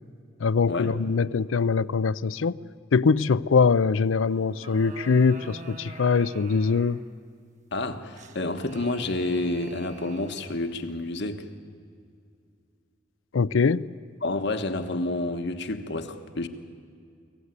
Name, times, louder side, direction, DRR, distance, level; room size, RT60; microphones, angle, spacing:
voice 1, 0.4-2.6 2.9-7.0 13.3-13.8, left 5 dB, 90° left, 19 dB, 0.5 m, -22 dB
sound 1, 4.3-7.1 8.1-10.7, right 3 dB, 40° right, 1.3 m, -45 dB
voice 2, 7.7-11.4 14.2-16.5, left 2 dB, 65° left, 8 dB, 1.4 m, -29 dB
24.0 x 16.0 x 9.7 m, 2.3 s
head